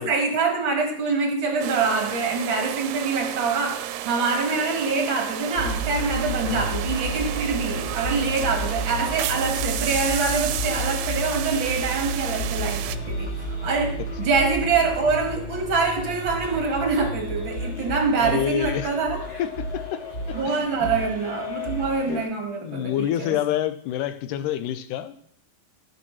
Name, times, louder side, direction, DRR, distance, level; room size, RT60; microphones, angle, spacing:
voice 1, 0.0-19.2 20.3-22.9 23.2-23.4, right 4 dB, 50° right, 1.5 m, -25 dB
sound 1, 1.6-13.0, right 13 dB, 80° right, 2.1 m, -32 dB
sound 2, 5.6-22.3, right 1 dB, 25° left, 1.4 m, -31 dB
voice 2, 18.2-18.9 19.4-20.0 20.3-21.1 22.1-22.2 22.6-25.2, left 11 dB, 80° left, 2.1 m, -28 dB
15.0 x 6.5 x 3.0 m
omnidirectional pair, 4.1 m